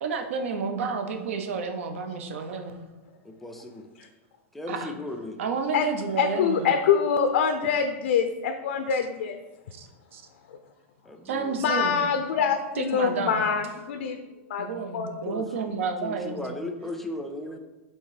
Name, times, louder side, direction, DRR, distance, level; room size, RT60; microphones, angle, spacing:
voice 1, 0.0-2.8 4.7-4.9 5.4-6.7 8.9-9.0 9.7-10.2 11.2-12.0 12.7-13.4 14.6-16.7, right 5 dB, 75° right, 6 dB, 0.8 m, -31 dB
voice 2, 3.2-3.9 4.5-5.4 11.0-11.6 15.3-15.5 16.0-17.6, left 2 dB, 5° left, 4 dB, 0.3 m, -36 dB
voice 3, 6.2-9.4 10.5-10.6 11.6-14.2 14.5-14.7 14.9-15.1, left 7 dB, 75° left, 6 dB, 0.5 m, -25 dB
5.4 x 3.6 x 4.9 m, 1.1 s
supercardioid pair, 175°, 7 cm